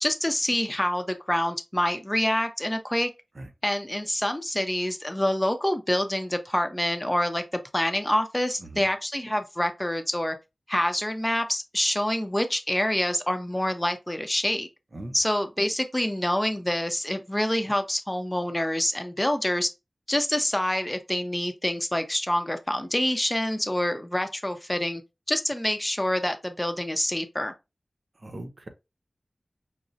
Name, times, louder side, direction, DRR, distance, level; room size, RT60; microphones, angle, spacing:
voice 1, 0.0-3.1 3.6-7.4 7.7-10.4 10.7-14.7 15.1-19.7 20.1-25.0 25.3-27.5, left 1 dB, 15° left, 0.6 m, -26 dB
voice 2, 28.2-28.7, right 1 dB, 60° right, 0.8 m, -39 dB
6.0 x 2.0 x 2.7 m
wide cardioid pair, 55°, 0 cm